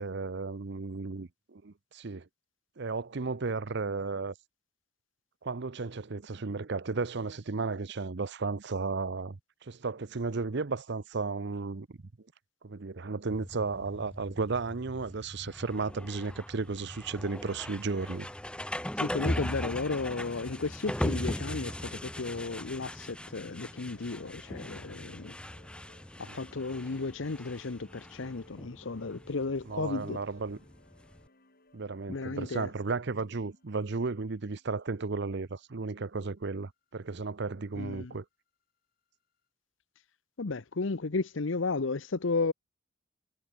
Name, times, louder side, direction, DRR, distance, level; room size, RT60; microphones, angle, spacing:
voice 1, 0.0-2.2 2.8-4.3 5.4-12.0 12.6-18.3 26.3-26.4 29.7-30.6 31.7-38.2, right 4 dB, 60° right, 0.7 m, -34 dB
sound 1, 13.3-31.3, left 1 dB, 5° left, 0.7 m, -39 dB
voice 2, 19.0-25.3 26.2-30.2 32.1-32.7 37.7-38.1 40.4-42.5, left 3 dB, 65° left, 0.8 m, -34 dB
sound 2, 21.3-35.4, left 2 dB, 50° left, 5.6 m, -61 dB
head